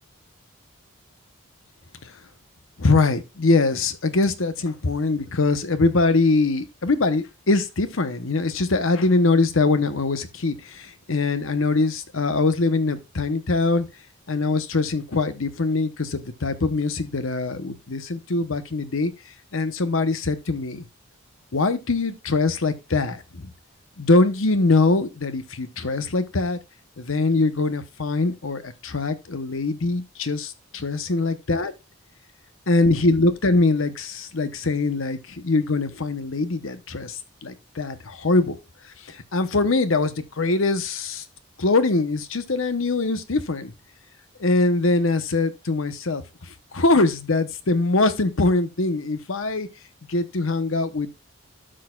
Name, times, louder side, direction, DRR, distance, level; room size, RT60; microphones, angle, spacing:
voice 1, 2.8-13.9 14.3-19.1 19.5-20.9 21.5-23.5 24.0-26.6 27.0-31.7 32.7-38.6 39.0-41.2 41.6-43.7 44.4-49.7 50.1-51.1, left 3 dB, 75° left, 0.9 m, -23 dB
12.5 x 6.4 x 2.4 m
head